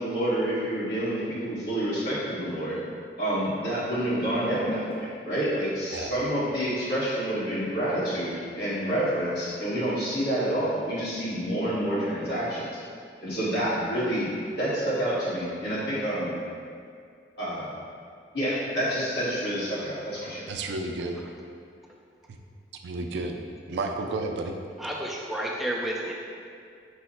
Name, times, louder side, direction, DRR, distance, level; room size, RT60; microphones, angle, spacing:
voice 1, 0.0-2.7 3.2-12.7 13.2-14.3 14.5-16.3 17.4-17.7 18.3-20.4, right 1 dB, 70° left, -10 dB, 1.5 m, -28 dB
voice 2, 20.5-21.2 22.3-22.4 22.8-23.4 23.7-24.6, right 3 dB, 75° right, 4 dB, 0.4 m, -31 dB
voice 3, 24.8-26.1, right 1 dB, ahead, -3 dB, 0.3 m, -31 dB
4.6 x 2.1 x 4.2 m, 2.3 s
head